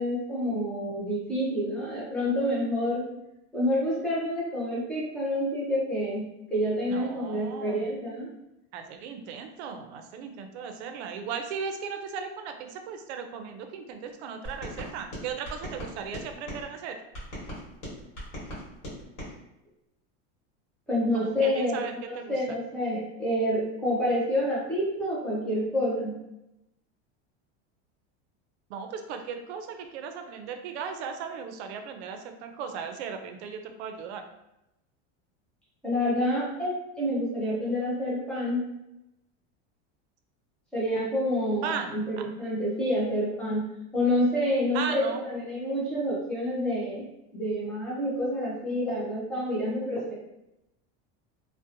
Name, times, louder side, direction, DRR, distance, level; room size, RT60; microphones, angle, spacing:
voice 1, 0.0-3.0 3.5-6.2 6.5-8.3 20.9-26.2 35.8-38.6 40.7-43.6 43.9-47.0 47.3-50.1, equal, 5° left, -7 dB, 0.4 m, -28 dB
voice 2, 6.9-7.9 8.7-17.0 21.1-22.4 28.7-34.3 41.6-42.3 44.7-45.2, right 6 dB, 75° right, 6 dB, 0.5 m, -37 dB
sound 1, 14.4-16.6 17.1-19.3, equal, 50° left, 1.3 m, -39 dB
2.6 x 2.0 x 2.5 m, 0.89 s
supercardioid pair, 165°, 33 cm